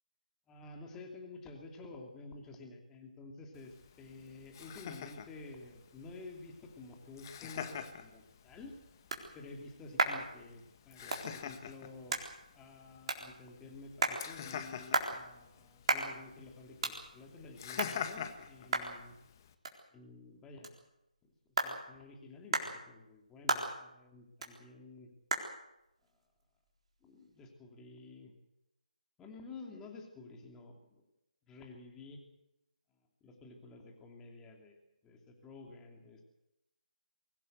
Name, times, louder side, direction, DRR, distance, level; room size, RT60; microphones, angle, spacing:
voice 1, 0.5-8.8 9.3-12.3 12.5-19.1 19.9-20.7 21.2-21.3 21.6-25.1 27.0-28.3 29.2-31.0 31.5-32.2 33.2-34.8 35.0-36.2, left 3 dB, 10° left, 2 dB, 2.8 m, -51 dB
Laughter, 3.5-19.5, left 8 dB, 25° left, 1.5 m, -47 dB
sound 1, 8.2-27.5, right 3 dB, 45° right, 3.9 m, -39 dB
24.0 x 17.0 x 8.0 m, 0.88 s
figure-of-eight pair, 155°, 4 cm